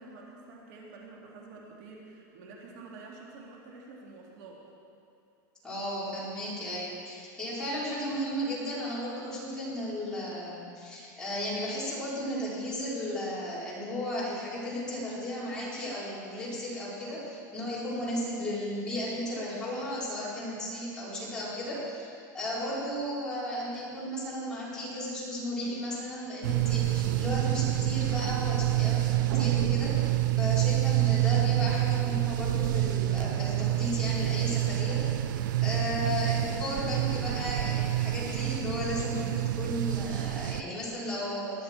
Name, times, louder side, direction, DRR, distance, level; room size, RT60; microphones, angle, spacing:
voice 1, 0.0-4.6 38.5-38.6, right 3 dB, 60° right, -2 dB, 2.3 m, -48 dB
voice 2, 5.6-29.9 30.4-35.0 35.6-41.6, left 1 dB, 5° left, -9 dB, 4.2 m, -34 dB
sound 1, 25.7-34.9, left 2 dB, 35° right, 1.7 m, -51 dB
sound 2, 26.4-40.6, right 15 dB, 75° right, 0.5 m, -27 dB
20.5 x 10.5 x 4.5 m, 2.6 s
supercardioid pair, 155°, 11 cm